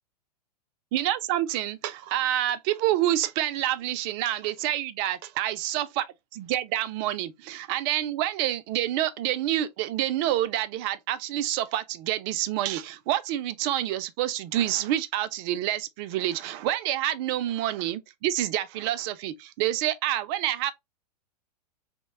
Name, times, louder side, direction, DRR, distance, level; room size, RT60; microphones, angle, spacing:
voice 1, 0.9-6.0 6.3-20.7, right 13 dB, 40° right, 0.4 m, -28 dB
2.9 x 2.2 x 3.1 m
hypercardioid pair, 110°, 21 cm